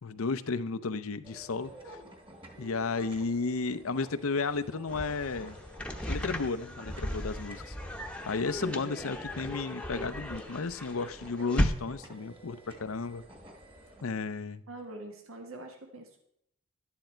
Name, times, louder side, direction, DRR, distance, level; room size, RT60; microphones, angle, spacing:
voice 1, 0.0-1.7 2.6-5.6 6.1-7.7 8.3-13.2 14.0-14.6, left 4 dB, 80° left, 12 dB, 0.6 m, -33 dB
sound 1, 1.2-14.0, right 1 dB, 25° right, 1.6 m, -51 dB
sound 2, 4.9-11.7, left 1 dB, 5° left, 0.9 m, -36 dB
voice 2, 8.6-8.9 14.7-16.2, right 1 dB, 80° right, 4 dB, 1.5 m, -44 dB
12.0 x 10.0 x 4.4 m, 0.76 s
head